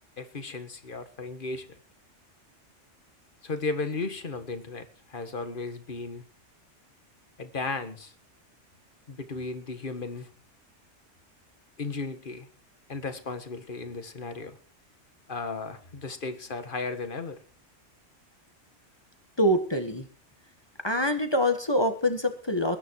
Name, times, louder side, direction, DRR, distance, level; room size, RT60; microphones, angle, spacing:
voice 1, 0.2-1.7 3.4-6.2 7.4-8.1 9.1-10.3 11.8-12.5 12.9-14.6 15.3-17.4, left 3 dB, 45° left, 9 dB, 1.8 m, -35 dB
voice 2, 19.4-20.1 20.8-22.8, equal, 20° left, 7 dB, 1.5 m, -25 dB
20.5 x 10.0 x 4.8 m, 0.41 s
omnidirectional pair, 1.2 m